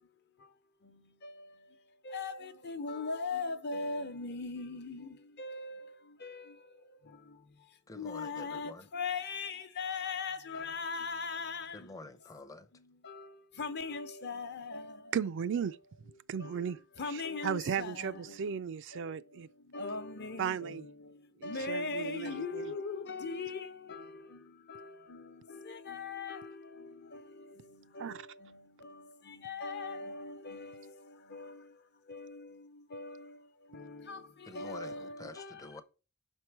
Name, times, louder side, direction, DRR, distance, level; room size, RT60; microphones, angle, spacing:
voice 1, 2.1-5.1 5.4-5.8 6.2-6.5 8.0-11.8 13.1-13.2 13.6-14.9 17.0-18.1 19.7-20.7 21.4-24.0 24.7-24.8 25.1-25.2 25.6-26.5 28.0-28.2 29.4-30.8 31.3-31.6 32.1-32.5 32.9-33.2 34.1-34.2 34.5-35.6, left 4 dB, 50° left, 0.9 m, -38 dB
voice 2, 7.9-8.9 11.7-12.7 34.5-35.8, left 2 dB, 15° left, 0.6 m, -48 dB
voice 3, 15.1-15.8 16.3-16.8 17.1-19.5 20.4-20.8 21.4-22.7 28.0-28.3, right 7 dB, 60° right, 0.4 m, -35 dB
6.0 x 4.5 x 4.6 m
head